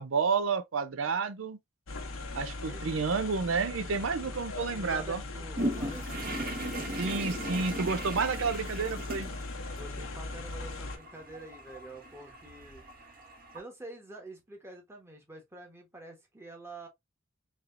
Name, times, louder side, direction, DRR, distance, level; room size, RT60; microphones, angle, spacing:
voice 1, 0.0-1.6 2.3-5.2 7.0-9.3, right 5 dB, 80° right, 0.6 m, -30 dB
sound 1, 1.9-11.0, left 2 dB, 90° left, 0.9 m, -39 dB
voice 2, 4.7-6.6 9.7-12.8 13.5-16.9, right 2 dB, 15° right, 1.1 m, -47 dB
sound 2, 5.6-13.6, right 1 dB, 45° right, 1.3 m, -38 dB
4.2 x 2.9 x 2.5 m
head